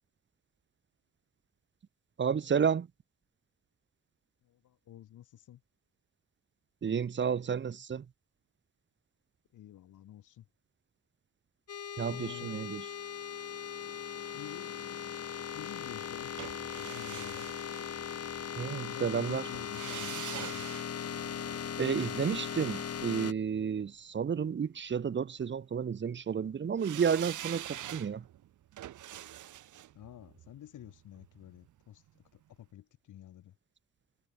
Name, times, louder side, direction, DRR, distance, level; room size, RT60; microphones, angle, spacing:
voice 1, 2.2-2.9 6.8-8.0 12.0-12.8 18.6-19.4 21.8-28.2, right 7 dB, 40° right, 1.4 m, -31 dB
voice 2, 4.5-5.6 9.5-10.4 12.1-12.7 14.3-15.2 15.5-16.3 16.8-17.5 18.8-20.6 29.9-32.0 32.6-33.5, left 12 dB, 90° left, 6.3 m, -50 dB
sound 1, 11.7-23.3, left 8 dB, 55° left, 5.3 m, -39 dB
sound 2, 16.4-18.5 19.5-23.8 26.8-31.8 32.1-32.2, right 12 dB, 90° right, 2.3 m, -45 dB
cardioid pair, 140°, 30 cm